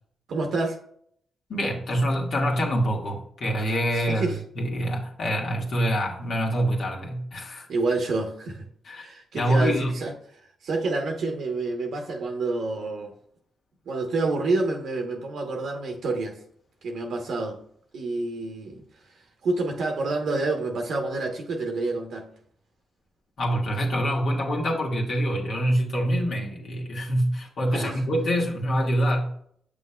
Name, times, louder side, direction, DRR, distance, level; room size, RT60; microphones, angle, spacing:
voice 1, 0.3-0.8 4.1-4.4 7.7-10.1 10.6-13.1 13.9-16.4 16.8-17.6 17.9-18.8 19.4-22.3 27.7-28.0, right 3 dB, 70° right, 3 dB, 0.9 m, -28 dB
voice 2, 1.5-7.7 8.8-9.0 9.3-9.9 23.4-29.4, equal, 60° left, -1 dB, 1.6 m, -25 dB
7.1 x 6.2 x 2.2 m, 0.65 s
hypercardioid pair, 45°, 0 cm